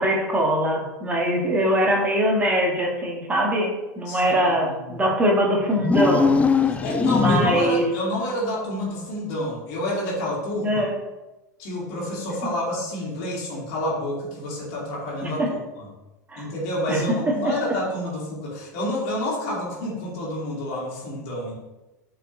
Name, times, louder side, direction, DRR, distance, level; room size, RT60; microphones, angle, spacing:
voice 1, 0.0-6.3 7.1-7.8 10.6-10.9 15.2-15.5 16.3-16.5 16.9-17.0 17.3-17.6, equal, 15° right, -1 dB, 1.9 m, -22 dB
voice 2, 4.1-5.0 6.7-10.9 11.6-15.9 16.4-21.6, left 1 dB, 50° left, -4 dB, 2.5 m, -29 dB
sound 1, 5.8-7.8, left 5 dB, 15° left, 0.5 m, -21 dB
8.7 x 4.7 x 3.3 m, 1.0 s
figure-of-eight pair, 80°, 10 cm